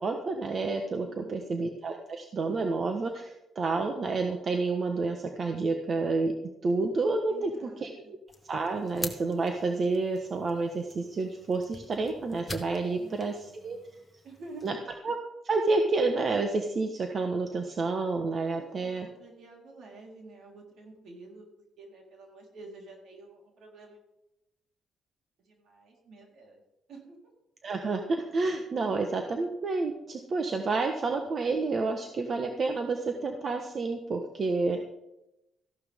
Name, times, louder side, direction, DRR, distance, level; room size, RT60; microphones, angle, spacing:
voice 1, 0.0-6.3 6.6-8.2 8.4-13.8 14.6-14.7 15.0-15.2 15.4-19.1 27.6-34.8, right 3 dB, 45° right, 4 dB, 1.3 m, -29 dB
voice 2, 1.0-1.6 7.3-8.1 12.9-13.9 14.2-14.7 18.5-21.5 21.8-24.0 25.4-26.6 26.9-27.2 34.7-34.8, right 3 dB, 70° right, -1 dB, 4.1 m, -50 dB
sound 1, 8.3-14.7, left 2 dB, 20° left, 1.6 m, -45 dB
14.0 x 11.5 x 3.7 m, 0.89 s
cardioid pair, 90°, 0 cm